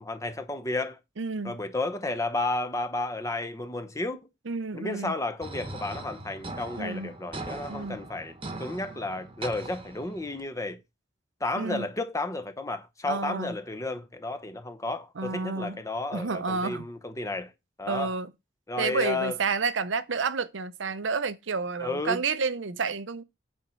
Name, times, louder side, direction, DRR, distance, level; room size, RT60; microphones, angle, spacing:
voice 1, 0.0-1.0 1.4-4.2 4.7-10.8 11.4-17.5 17.8-18.1 18.7-19.3 21.8-22.2, left 2 dB, 15° left, 0.9 m, -32 dB
voice 2, 1.2-1.6 4.5-5.1 6.8-7.1 7.7-8.0 11.6-11.9 13.1-13.6 15.2-15.8 16.1-16.9 17.9-18.3 18.8-23.2, right 4 dB, 85° right, 0.7 m, -30 dB
sound 1, 5.4-10.4, right 2 dB, 30° right, 1.1 m, -40 dB
8.1 x 4.4 x 5.5 m
head